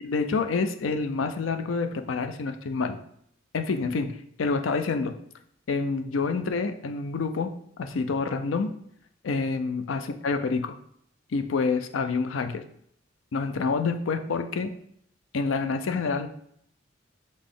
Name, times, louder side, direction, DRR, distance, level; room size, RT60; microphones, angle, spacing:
voice 1, 0.0-3.0 3.5-5.1 5.7-7.5 7.8-8.7 9.2-10.7 11.3-12.6 13.3-14.7 15.3-16.3, left 4 dB, 90° left, 8 dB, 0.5 m, -27 dB
4.0 x 3.7 x 3.6 m, 0.68 s
head